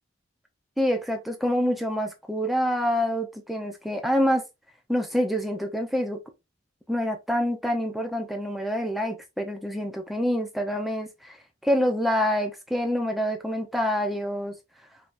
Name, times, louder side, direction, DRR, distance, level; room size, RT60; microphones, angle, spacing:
voice 1, 0.8-4.4 4.9-6.2 6.9-11.4 11.6-14.5, equal, ahead, 0.8 m, -26 dB
5.2 x 3.1 x 2.6 m
head